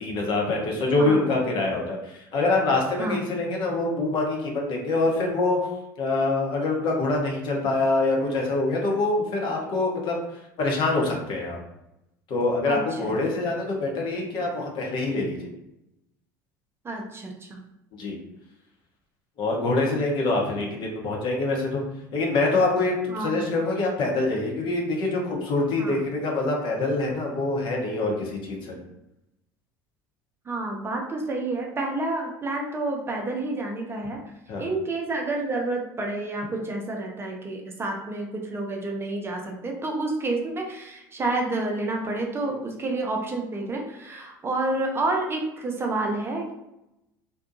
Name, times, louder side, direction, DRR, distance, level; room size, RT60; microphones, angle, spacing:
voice 1, 0.0-5.6 6.0-11.6 12.3-15.4 18.0-18.2 19.4-21.8 22.1-28.8 34.5-34.7, left 2 dB, 50° left, -1 dB, 0.8 m, -25 dB
voice 2, 12.7-13.0 16.8-17.6 23.1-23.4 25.8-26.0 30.5-34.2 34.6-46.5, right 2 dB, 25° right, 0 dB, 0.5 m, -29 dB
2.6 x 2.2 x 2.6 m, 0.89 s
figure-of-eight pair, 65°, 11 cm